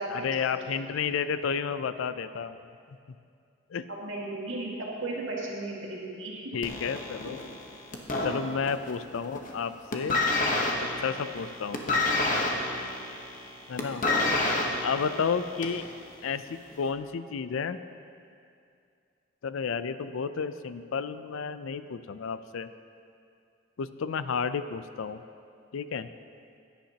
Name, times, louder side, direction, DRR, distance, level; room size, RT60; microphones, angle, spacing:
voice 1, 0.1-2.6 3.7-3.9 6.5-7.4 8.2-10.2 11.0-12.1 13.7-14.0 14.8-15.9 16.2-17.8 19.4-22.7 23.8-25.2 25.7-26.1, left 6 dB, 75° left, 12 dB, 0.4 m, -31 dB
voice 2, 4.0-6.4, right 2 dB, 70° right, -4 dB, 2.1 m, -35 dB
sound 1, 6.6-9.0 9.2-9.6 9.9-15.9 16.7-16.8, left 2 dB, 40° left, 1.0 m, -28 dB
16.0 x 10.0 x 2.9 m, 2.4 s
head